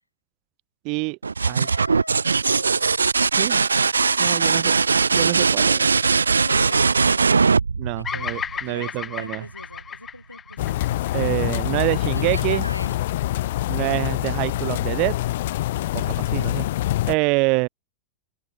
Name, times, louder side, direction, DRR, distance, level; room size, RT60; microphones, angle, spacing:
voice 1, 0.8-1.2 1.5-1.7 3.4-3.6 4.2-4.8 5.1-5.9 7.8-9.5 11.1-12.6 13.7-15.1 15.9-16.7 17.1-17.7, right 30 dB, 45° right, 0.4 m, -26 dB
sound 1, 1.2-8.8 10.6-11.2, right 5 dB, 75° right, 0.8 m, -20 dB
voice 2, 1.4-3.0 4.3-4.8 6.3-7.5 8.0-10.9 12.0-12.9, left 1 dB, 85° left, 7.0 m, -38 dB
Bird vocalization bird call bird song, 8.0-12.3, left 7 dB, 20° left, 0.8 m, -34 dB
sound 2, 10.6-17.2, left 15 dB, 55° left, 0.6 m, -25 dB
open air
figure-of-eight pair, 90°, 0 cm